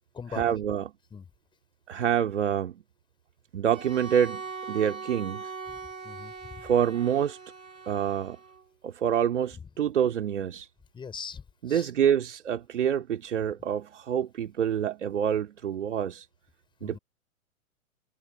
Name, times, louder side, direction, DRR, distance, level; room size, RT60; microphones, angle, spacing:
voice 1, 0.3-0.9 1.9-2.8 3.5-4.4 4.7-5.5 6.6-7.4 7.9-8.4 8.8-10.7 11.6-16.3 16.8-17.0, right 9 dB, 55° right, 2.6 m, -27 dB
Bowed string instrument, 3.7-8.7, right 5 dB, 75° right, 4.7 m, -41 dB
voice 2, 6.0-6.6 10.9-11.9 16.8-17.0, left 6 dB, 10° left, 5.1 m, -41 dB
figure-of-eight pair, 115°, 42 cm